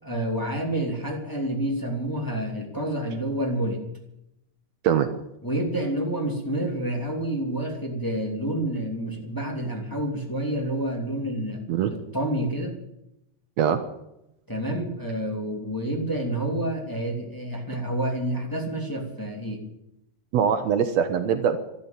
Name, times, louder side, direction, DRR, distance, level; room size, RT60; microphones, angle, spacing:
voice 1, 0.0-3.8 5.4-11.6 11.9-12.8 14.5-19.6, right 1 dB, 5° left, 0 dB, 2.7 m, -28 dB
voice 2, 20.3-21.6, right 8 dB, 70° right, 9 dB, 2.0 m, -22 dB
12.5 x 12.5 x 8.9 m, 0.84 s
omnidirectional pair, 3.3 m